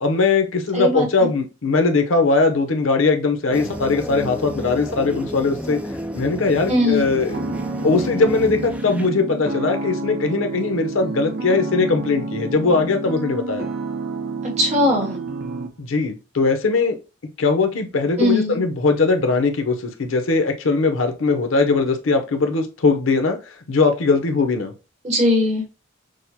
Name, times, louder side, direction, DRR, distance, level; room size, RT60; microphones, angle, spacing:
voice 1, 0.0-5.8 6.1-7.4 7.8-13.7 15.8-17.0 17.4-24.7, left 3 dB, 90° left, 0.8 m, -20 dB
voice 2, 0.7-1.3 6.7-7.0 14.6-15.1 18.2-18.6 25.0-25.7, left 1 dB, 35° right, 1.1 m, -19 dB
sound 1, 3.5-9.1, equal, 5° right, 0.4 m, -32 dB
sound 2, 7.3-15.7, right 2 dB, 50° right, 0.6 m, -29 dB
6.3 x 2.1 x 2.8 m
head